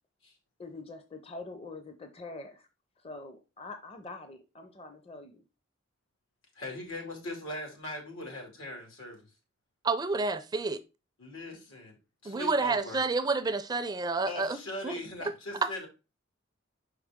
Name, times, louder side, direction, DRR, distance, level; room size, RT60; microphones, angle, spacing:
voice 1, 0.6-2.7 3.0-5.4, left 3 dB, 30° left, 0.6 m, -44 dB
voice 2, 6.5-9.3 11.2-12.0 12.2-13.0 14.2-15.9, left 1 dB, 85° left, 2.5 m, -40 dB
voice 3, 9.8-10.8 12.2-14.9 15.6-15.8, right 3 dB, 20° right, 0.4 m, -29 dB
5.7 x 4.8 x 3.5 m
head